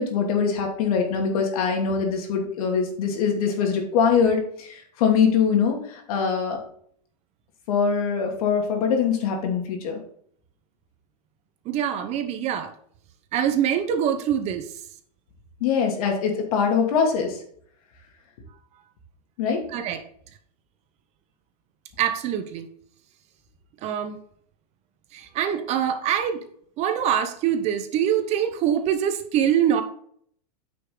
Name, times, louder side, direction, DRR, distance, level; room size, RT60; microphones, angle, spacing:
voice 1, 0.0-6.6 7.7-10.0 15.6-17.4 19.4-19.6, left 6 dB, 60° left, 2 dB, 2.7 m, -23 dB
voice 2, 11.7-12.7 13.3-14.7 19.7-20.0 22.0-22.7 23.8-24.2 25.1-26.4 26.8-29.8, right 9 dB, 30° right, 8 dB, 0.9 m, -24 dB
9.2 x 5.8 x 3.9 m, 0.62 s
supercardioid pair, 145°, 21 cm